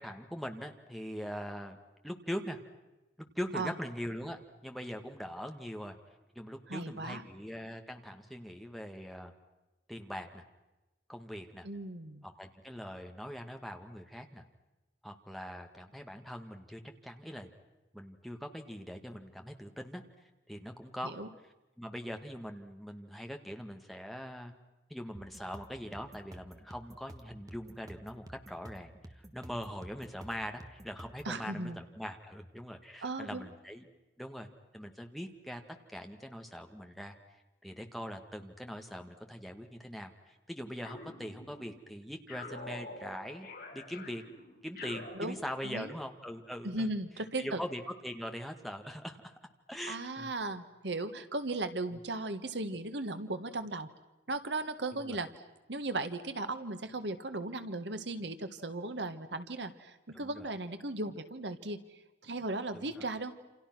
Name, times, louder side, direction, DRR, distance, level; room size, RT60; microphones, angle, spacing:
voice 1, 0.0-1.8 2.0-2.6 3.4-6.0 6.4-9.3 9.9-10.4 11.1-11.7 12.2-14.4 15.0-17.5 17.9-20.0 20.5-21.2 21.8-24.5 24.9-33.8 34.2-34.5 34.7-35.6 35.9-37.2 37.6-43.5 43.7-44.2 44.6-46.9 47.4-49.4 49.7-50.3 51.9-52.0 54.9-55.2 60.1-60.5 62.7-63.1, equal, ahead, 4 dB, 1.7 m, -42 dB
voice 2, 6.7-7.2 11.6-12.2 21.0-21.3 31.2-31.8 33.0-33.5 45.1-45.9 46.6-47.6 49.9-53.9 54.3-55.3 55.7-61.8 62.2-63.3, right 2 dB, 80° right, 10 dB, 1.6 m, -37 dB
sound 1, 25.1-31.3, right 1 dB, 20° right, 1.2 m, -51 dB
sound 2, 40.8-41.8 42.3-45.9, left 2 dB, 55° left, 6.1 m, -47 dB
28.5 x 28.0 x 6.1 m, 1.1 s
head